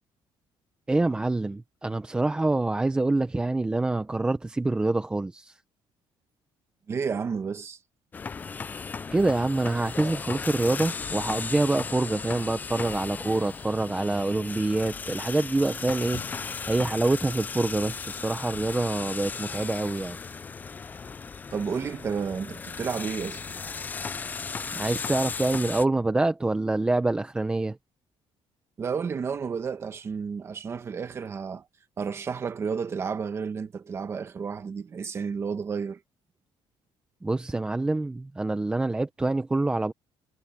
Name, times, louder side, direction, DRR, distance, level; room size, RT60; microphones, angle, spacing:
voice 1, 0.9-5.6 9.1-16.2 16.7-20.2 24.7-27.8 37.2-39.9, right 2 dB, 10° right, 0.7 m, -26 dB
voice 2, 6.9-7.8 21.5-23.4 28.8-31.7 32.0-36.0, right 6 dB, 25° right, 1.4 m, -31 dB
sound 1, 8.1-25.9, left 5 dB, 15° left, 0.3 m, -36 dB
sound 2, 16.1-17.7, left 8 dB, 40° left, 4.9 m, -47 dB
cardioid pair, 175°, 10 cm